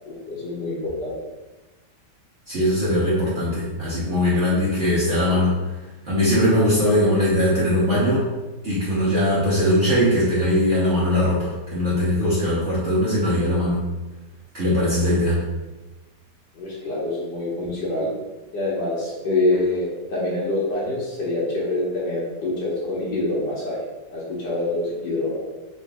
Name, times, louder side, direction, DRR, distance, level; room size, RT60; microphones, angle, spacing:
voice 1, 0.1-1.2 16.6-18.1 18.5-23.8 24.1-25.4, left 2 dB, 90° left, -7 dB, 1.8 m, -25 dB
voice 2, 2.5-5.8 6.0-8.2 8.6-13.8 14.5-15.4, left 1 dB, 50° right, -8 dB, 1.1 m, -20 dB
3.9 x 2.8 x 3.4 m, 1.1 s
omnidirectional pair, 1.9 m